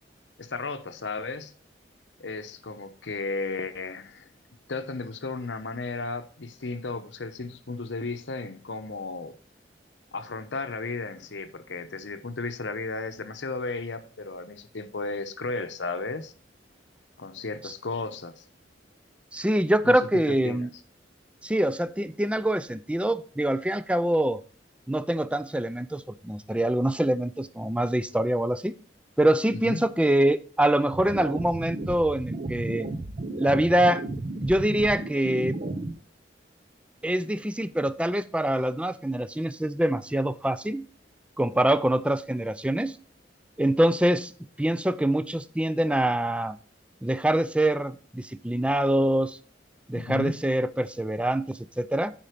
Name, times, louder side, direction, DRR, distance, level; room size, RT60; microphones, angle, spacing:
voice 1, 0.4-1.5 2.2-4.3 4.7-9.4 10.1-16.3 17.2-18.4 19.8-20.0 20.3-20.7 29.6-29.8 49.9-50.4, left 3 dB, 80° left, 0.9 m, -34 dB
voice 2, 19.3-20.7 21.4-24.4 24.9-28.7 29.2-32.9 33.3-34.1 34.4-35.6 37.0-40.9 41.4-43.0 43.6-44.3 44.6-46.6 47.0-49.4 49.9-52.1, right 1 dB, 5° right, 0.4 m, -25 dB
sound 1, 30.9-35.9, right 2 dB, 45° right, 0.8 m, -34 dB
9.0 x 5.6 x 5.0 m
head